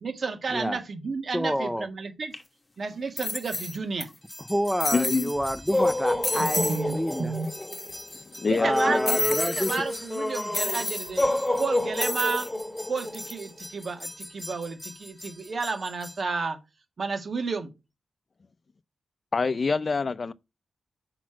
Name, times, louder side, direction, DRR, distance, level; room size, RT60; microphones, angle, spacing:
voice 1, 0.0-2.3 2.8-4.1 6.6-7.5 8.5-9.0 9.6-11.3 11.6-12.5 12.9-16.6 17.0-17.7, right 4 dB, 60° right, 1.9 m, -31 dB
voice 2, 1.3-1.9 4.4-7.3 8.6-9.8, equal, 5° right, 0.7 m, -28 dB
sound 1, 2.3-2.4 3.2-4.0 4.3-4.4 4.8-5.3 5.7-5.9 6.2-6.8 7.1-7.2 7.4-8.2 9.1-9.8 10.5-11.1 12.0-12.5 13.0-13.3, left 2 dB, 30° left, 1.1 m, -30 dB
sound 2, 4.3-16.2, left 1 dB, 15° left, 2.0 m, -31 dB
voice 3, 4.9-5.3 8.4-9.2 19.3-20.3, left 4 dB, 50° left, 0.5 m, -26 dB
5.8 x 4.2 x 6.2 m
cardioid pair, 60°, 0 cm